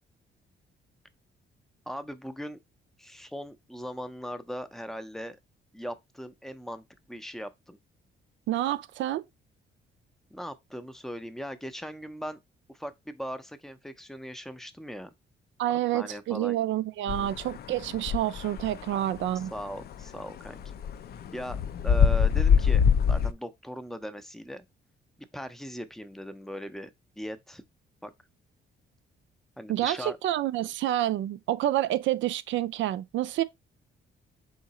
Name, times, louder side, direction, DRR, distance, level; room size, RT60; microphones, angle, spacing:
voice 1, 1.9-2.6 3.0-5.4 5.7-7.8 10.3-12.4 12.7-15.1 15.7-16.6 17.1-17.3 18.9-19.0 19.5-20.8 21.3-24.6 25.3-26.9 27.2-27.6 28.0-28.1 29.6-30.2, equal, ahead, 0.5 m, -39 dB
voice 2, 8.5-9.2 15.6-19.5 29.7-33.4, right 13 dB, 70° right, 0.4 m, -28 dB
sound 1, 17.1-18.8 19.2-19.3 19.6-20.1 20.4-23.3, left 7 dB, 55° left, 0.4 m, -23 dB
3.7 x 2.9 x 4.0 m
cardioid pair, 90°, 20 cm